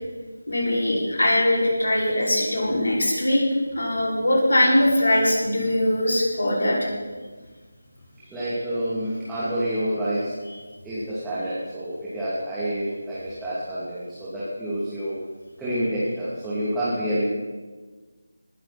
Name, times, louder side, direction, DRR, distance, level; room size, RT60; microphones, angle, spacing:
voice 1, 0.5-3.4 3.8-6.9 10.5-10.6, left 1 dB, 70° left, -4 dB, 5.5 m, -21 dB
voice 2, 8.2-10.3 10.8-15.2 15.6-17.2, right 1 dB, 5° right, -12 dB, 2.6 m, -28 dB
20.5 x 11.0 x 4.3 m, 1.4 s
figure-of-eight pair, 160°, 0 cm